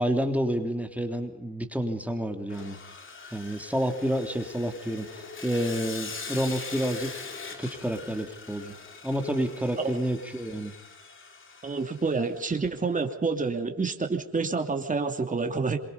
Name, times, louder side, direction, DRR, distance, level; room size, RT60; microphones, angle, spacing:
voice 1, 0.0-2.8 3.3-7.3 7.6-8.8 9.0-10.7, equal, 5° right, 4 dB, 3.3 m, -29 dB
Sawing, 2.5-12.7, left 4 dB, 40° left, 3.5 m, -42 dB
voice 2, 11.6-15.8, right 4 dB, 25° right, 5 dB, 2.9 m, -28 dB
26.5 x 24.0 x 5.4 m, 0.84 s
cardioid pair, 90°, 30 cm